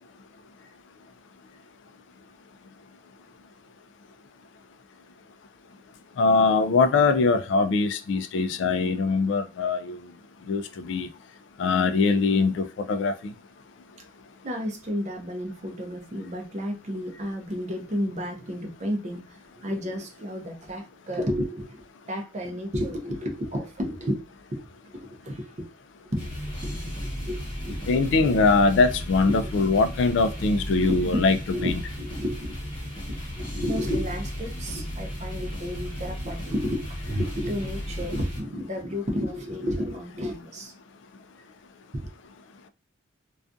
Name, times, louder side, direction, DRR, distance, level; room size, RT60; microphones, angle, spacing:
voice 1, 6.2-10.0 10.5-11.1 11.6-13.3 27.9-31.4 31.6-31.8, left 4 dB, 65° left, 0.3 m, -22 dB
voice 2, 14.4-24.2 24.5-24.6 24.9-25.5 26.1-26.4 26.6-26.9 27.2-27.8 29.3-29.5 30.8-31.2 31.5-32.5 33.1-40.7 42.0-42.1, equal, 35° right, 0.5 m, -32 dB
sound 1, 26.2-38.4, equal, 25° left, 0.9 m, -34 dB
2.3 x 2.3 x 2.5 m
head